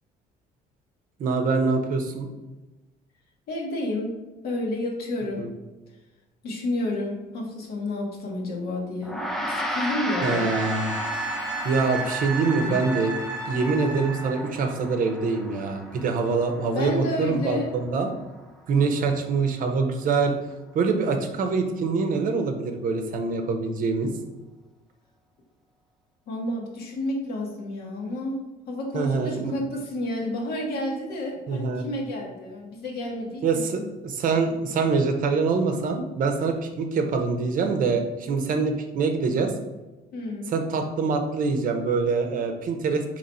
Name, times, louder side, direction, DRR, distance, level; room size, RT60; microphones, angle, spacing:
voice 1, 1.2-2.3 5.4-5.5 10.2-11.0 11.6-13.1 13.5-18.1 18.7-20.4 20.7-24.1 28.9-29.5 31.5-31.9 33.4-39.5 40.5-43.0, right 4 dB, 55° right, 5 dB, 0.7 m, -25 dB
voice 2, 3.5-4.1 4.4-5.5 6.4-9.2 9.5-10.5 12.6-12.8 16.7-17.7 26.3-28.4 28.7-33.9 40.1-40.5, left 1 dB, 65° left, -1 dB, 1.2 m, -30 dB
Gong, 9.0-18.6, equal, ahead, 0.5 m, -34 dB
Wind instrument woodwind instrument, 10.2-14.5 17.1-17.3, right 3 dB, 20° right, 1.1 m, -34 dB
4.0 x 3.0 x 4.2 m, 1.1 s
cardioid pair, 110°, 17 cm